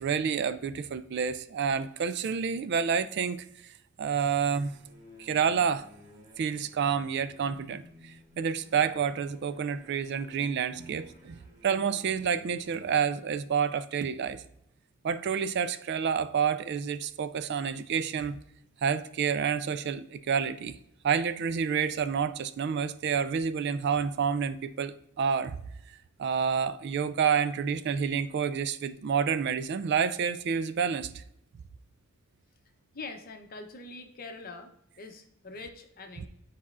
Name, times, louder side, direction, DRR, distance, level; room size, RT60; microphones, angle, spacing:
voice 1, 0.0-3.4 4.0-4.7 5.2-5.8 6.4-14.4 15.0-18.4 18.8-20.8 21.0-25.6 26.2-31.2 36.2-36.3, right 7 dB, 50° right, 13 dB, 0.3 m, -29 dB
sound 1, 4.4-13.2, left 1 dB, 35° right, 1.5 m, -55 dB
voice 2, 32.9-36.3, left 3 dB, 45° left, 5 dB, 0.7 m, -44 dB
9.5 x 4.2 x 2.4 m, 0.76 s
head